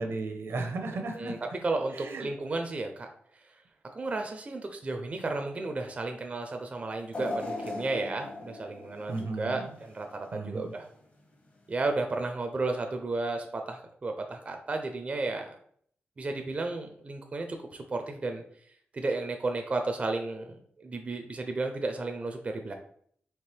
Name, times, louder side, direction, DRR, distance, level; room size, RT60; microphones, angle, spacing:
voice 1, 0.0-1.3 1.9-2.3 9.1-9.7 10.3-10.7, right 3 dB, 70° right, 5 dB, 0.7 m, -34 dB
voice 2, 1.1-3.1 3.9-9.6 9.9-10.9 11.7-15.6 16.2-18.4 18.9-22.7, right 3 dB, 30° right, 4 dB, 0.4 m, -33 dB
sound 1, 7.1-10.3 10.7-10.8 11.9-12.0, left 2 dB, 35° left, 0.8 m, -39 dB
4.4 x 3.2 x 3.2 m, 0.63 s
wide cardioid pair, 145°, 4 cm